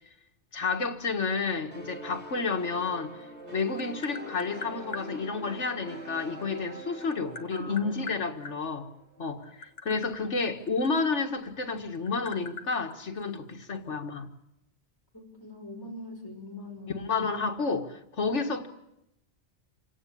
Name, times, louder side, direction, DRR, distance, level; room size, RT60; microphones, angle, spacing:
voice 1, 0.5-3.1 3.5-8.9 9.2-14.3 16.9-18.7, left 4 dB, 80° left, 2.0 m, -30 dB
sound 1, 1.7-9.2, right 1 dB, 70° right, 4.8 m, -44 dB
Tap, 3.2-5.1 6.4-8.6 9.3-11.5 11.8-13.8, left 4 dB, 60° left, 1.5 m, -42 dB
voice 2, 7.5-7.9 9.2-9.3 15.4-17.0, left 1 dB, 20° left, 6.0 m, -42 dB
27.5 x 17.5 x 8.4 m
omnidirectional pair, 1.2 m